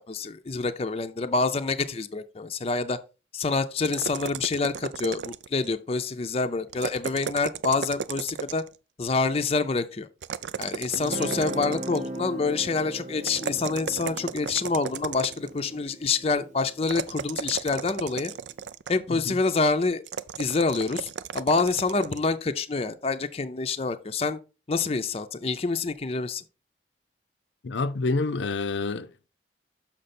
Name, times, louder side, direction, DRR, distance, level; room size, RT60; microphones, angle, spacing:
voice 1, 0.0-3.0 3.3-8.6 9.0-10.1 10.6-18.3 18.9-20.0 20.4-24.4 24.7-26.4, left 4 dB, 35° left, 0.5 m, -27 dB
sound 1, 3.8-5.7 6.7-8.8 10.2-12.2 13.2-15.6 16.8-19.1 20.1-22.3, right 7 dB, 90° right, 0.4 m, -35 dB
Guitar, 11.0-18.1, right 1 dB, 40° right, 0.6 m, -38 dB
voice 2, 27.6-29.3, left 3 dB, 90° left, 0.6 m, -28 dB
6.5 x 5.9 x 4.2 m
head